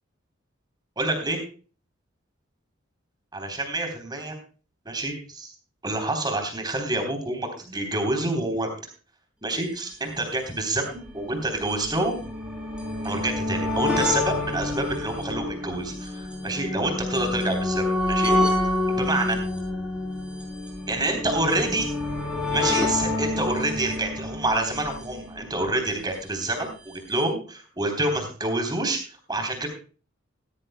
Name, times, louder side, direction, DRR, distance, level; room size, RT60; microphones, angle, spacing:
voice 1, 1.0-1.4 3.3-4.3 4.8-5.5 5.8-8.7 9.4-12.2 13.0-18.3 18.9-19.4 20.9-21.9 22.5-29.0 29.3-29.7, right 2 dB, 20° right, 5 dB, 3.5 m, -27 dB
sound 1, 9.5-9.6 9.8-9.9 10.7-26.0 26.9-27.0 27.2-27.3, left 2 dB, 5° right, 3.7 m, -28 dB
16.5 x 14.0 x 2.2 m, 0.37 s
head